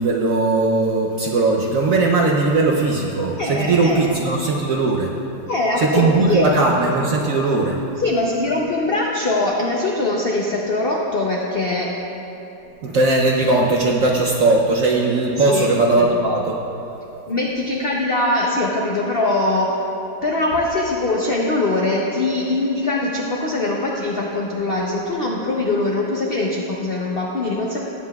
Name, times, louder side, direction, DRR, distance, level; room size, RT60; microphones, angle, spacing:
voice 1, 0.0-5.1 5.8-7.8 12.8-16.6, right 3 dB, 65° right, -1 dB, 0.8 m, -18 dB
voice 2, 3.4-4.0 5.5-6.5 8.0-11.9 15.5-15.7 16.0-16.1 17.3-19.8 20.2-27.8, left 2 dB, 75° left, -2 dB, 0.5 m, -22 dB
18.0 x 7.6 x 2.3 m, 3.0 s
omnidirectional pair, 2.1 m